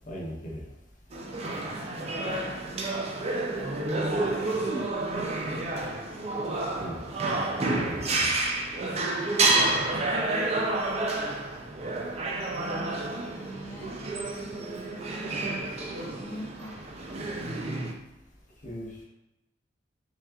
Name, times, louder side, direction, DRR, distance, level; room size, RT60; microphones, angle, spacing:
voice 1, 0.1-0.6 6.8-7.0 7.8-8.3 18.6-19.0, equal, 45° left, -4 dB, 0.9 m, -38 dB
sound 1, 1.1-17.9, right 2 dB, 35° right, 0.5 m, -29 dB
voice 2, 2.6-4.3 4.6-4.9 9.9-10.0 11.5-11.8 13.3-14.0 14.7-16.8, right 1 dB, 15° left, -6 dB, 0.8 m, -43 dB
5.7 x 2.4 x 2.4 m, 0.93 s
head